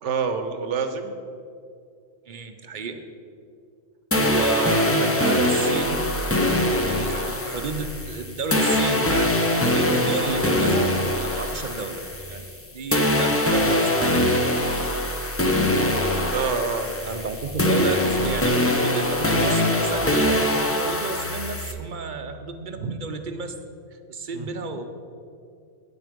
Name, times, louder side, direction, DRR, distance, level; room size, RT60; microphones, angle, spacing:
voice 1, 0.0-1.1 16.3-16.9 22.8-22.9 24.3-24.5, right 5 dB, 75° right, 8 dB, 1.1 m, -27 dB
voice 2, 2.3-3.0 4.2-6.0 6.9-10.9 11.2-12.0 12.3-12.4 12.7-14.4 17.1-23.5 24.1-24.8, right 4 dB, 50° right, 7 dB, 0.7 m, -31 dB
sound 1, 4.1-12.6 12.9-21.7, left 1 dB, 15° left, 0.4 m, -23 dB
9.3 x 8.1 x 5.1 m, 2.4 s
omnidirectional pair, 1.3 m